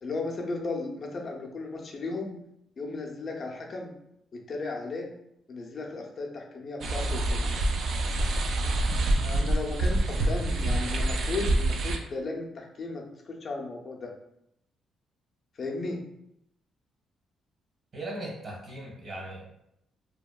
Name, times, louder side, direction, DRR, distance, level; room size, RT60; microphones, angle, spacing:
voice 1, 0.0-2.3 2.8-3.9 4.3-5.1 5.5-7.4 9.2-14.1 15.6-16.0, left 3 dB, 45° left, 1 dB, 0.5 m, -35 dB
sound 1, 6.8-12.0, right 1 dB, 65° right, 0.3 m, -26 dB
voice 2, 17.9-19.5, right 1 dB, 50° right, -3 dB, 1.1 m, -38 dB
2.8 x 2.2 x 2.2 m, 0.79 s
cardioid pair, 90°, 0 cm